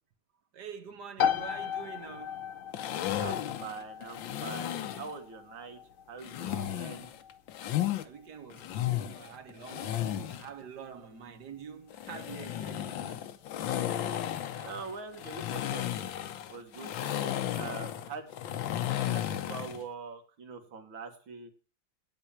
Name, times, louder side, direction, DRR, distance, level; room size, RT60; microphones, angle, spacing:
voice 1, 0.5-2.5 6.4-6.9 8.0-13.4, right 7 dB, 60° right, 1.8 m, -46 dB
sound 1, 1.2-15.7, left 8 dB, 50° left, 1.3 m, -39 dB
sound 2, 2.7-5.1 6.2-8.0 8.5-10.5 11.9-19.8, left 11 dB, 75° left, 1.6 m, -34 dB
voice 2, 3.2-5.8 6.1-7.1 14.5-15.8 16.5-18.4 19.0-21.5, right 5 dB, 80° right, 2.5 m, -43 dB
10.0 x 9.0 x 7.3 m
omnidirectional pair, 2.1 m